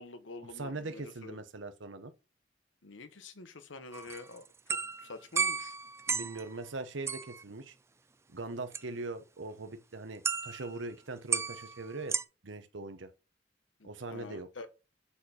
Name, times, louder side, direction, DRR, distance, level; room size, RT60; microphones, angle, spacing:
voice 1, 0.0-1.4 2.8-5.8 13.8-14.7, left 3 dB, 75° left, 0.9 m, -47 dB
voice 2, 0.6-2.1 6.1-7.7 8.3-12.1 12.4-13.1 13.8-14.5, right 3 dB, 75° right, 1.0 m, -41 dB
sound 1, 3.9-6.5 7.1-7.4 8.7-8.8 10.2-10.8 11.3-12.2, right 5 dB, 15° right, 0.3 m, -34 dB
7.3 x 4.3 x 4.2 m
head